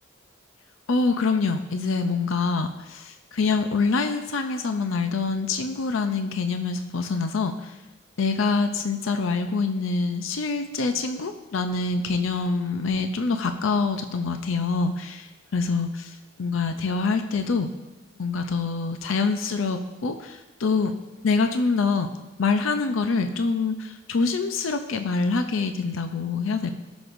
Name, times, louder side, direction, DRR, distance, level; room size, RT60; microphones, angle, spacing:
voice 1, 0.9-7.8 8.2-17.7 18.2-20.9 21.2-22.1 22.4-26.7, left 4 dB, 80° left, 7 dB, 0.6 m, -25 dB
16.5 x 6.1 x 2.6 m, 1.1 s
head